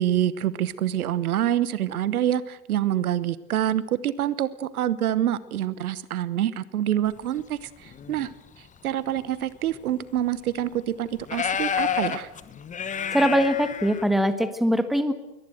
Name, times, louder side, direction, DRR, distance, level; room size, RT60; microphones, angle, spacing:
voice 1, 0.0-8.3 8.6-12.3, right 11 dB, 65° right, 18 dB, 1.1 m, -26 dB
sound 1, 7.7-8.3 9.2-9.3 9.7-9.8 10.5-10.6 11.2-14.2, left 7 dB, 15° left, 1.2 m, -29 dB
voice 2, 13.1-15.1, equal, ahead, 11 dB, 1.4 m, -22 dB
22.0 x 19.0 x 7.9 m, 0.97 s
figure-of-eight pair, 100°, 47 cm